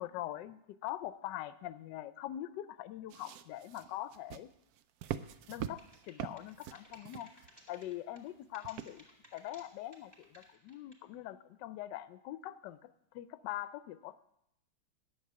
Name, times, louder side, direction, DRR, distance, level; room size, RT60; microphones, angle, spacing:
voice 1, 0.0-4.5 5.5-5.8 6.1-7.3 7.7-9.0 9.3-12.9 13.1-14.2, left 13 dB, 75° left, 14 dB, 1.1 m, -43 dB
sound 1, 3.1-7.8 8.6-9.2 9.8-9.9, right 10 dB, 85° right, 0.8 m, -44 dB
sound 2, 5.8-8.3 8.5-9.6 9.9-11.1, equal, 10° right, 2.1 m, -59 dB
10.0 x 7.0 x 8.1 m, 0.80 s
omnidirectional pair, 2.2 m